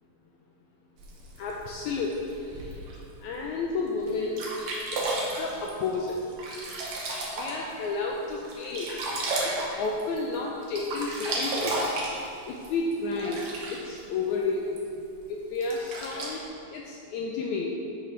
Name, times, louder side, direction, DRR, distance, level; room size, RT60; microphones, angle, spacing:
Sink (filling or washing), 1.0-3.0 3.6-3.7 4.1-4.2 4.4-7.9 8.2-10.4 10.6-14.0 14.8-14.9 15.6-16.4, right 2 dB, 65° right, 2.1 m, -33 dB
voice 1, 1.4-2.4 3.2-4.5 4.9-6.2 7.3-8.9 9.4-11.8 12.5-15.0 15.3-16.4 16.7-17.7, left 3 dB, 85° left, -1 dB, 1.7 m, -31 dB
8.9 x 6.8 x 3.2 m, 2.5 s
omnidirectional pair, 3.9 m